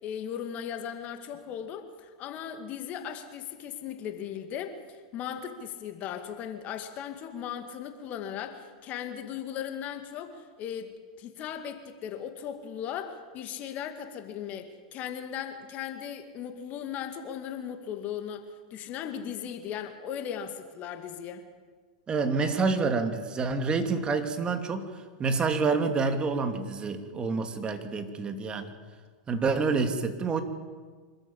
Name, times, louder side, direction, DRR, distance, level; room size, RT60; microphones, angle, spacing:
voice 1, 0.0-21.5, left 9 dB, 40° left, 7 dB, 2.1 m, -37 dB
voice 2, 22.1-24.9 25.2-28.7 29.3-30.4, right 4 dB, 25° right, 7 dB, 2.7 m, -28 dB
25.5 x 13.5 x 8.8 m, 1.5 s
hypercardioid pair, 100°, 4 cm